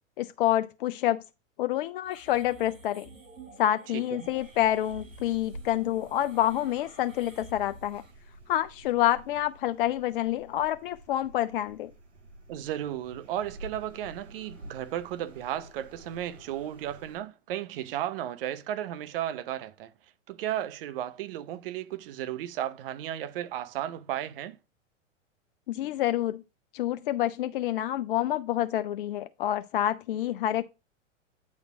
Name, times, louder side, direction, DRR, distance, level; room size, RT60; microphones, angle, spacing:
voice 1, 0.2-1.2 1.6-3.1 3.6-8.0 8.5-11.9 25.7-26.4 26.7-30.6, left 13 dB, 45° left, 0.4 m, -28 dB
sound 1, 2.0-8.1, right 2 dB, 80° right, 3.3 m, -51 dB
voice 2, 3.9-4.3 12.5-19.9 20.3-24.6, right 12 dB, 45° right, 0.8 m, -34 dB
sound 2, 4.2-17.2, right 1 dB, 65° right, 4.7 m, -50 dB
8.6 x 4.2 x 4.2 m
figure-of-eight pair, 100°, 38 cm